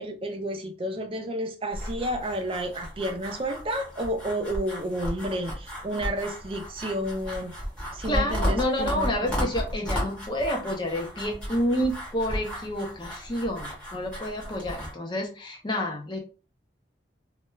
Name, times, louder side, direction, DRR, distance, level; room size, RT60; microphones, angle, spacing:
voice 1, 0.0-7.5 7.9-9.5, right 1 dB, 30° right, 5 dB, 0.4 m, -31 dB
sound 1, 1.7-14.9, equal, 5° left, 1.0 m, -34 dB
voice 2, 8.1-16.2, left 1 dB, 25° left, 1 dB, 0.6 m, -29 dB
2.2 x 2.2 x 3.1 m, 0.35 s
head